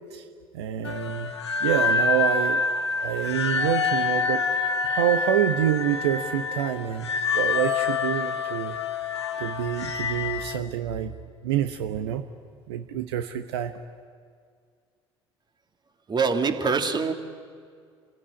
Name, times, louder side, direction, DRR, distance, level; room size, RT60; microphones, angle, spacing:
voice 1, 0.5-1.3 1.6-2.6 3.0-4.4 4.8-8.8 9.4-11.1 11.4-12.2 12.7-13.7, right 10 dB, 75° right, 8 dB, 1.0 m, -27 dB
sound 1, 0.8-10.6, left 5 dB, 85° left, 0.9 m, -27 dB
voice 2, 16.1-17.1, right 5 dB, 30° right, 7 dB, 2.4 m, -24 dB
28.0 x 16.5 x 9.9 m, 2.1 s
figure-of-eight pair, 60°, 14 cm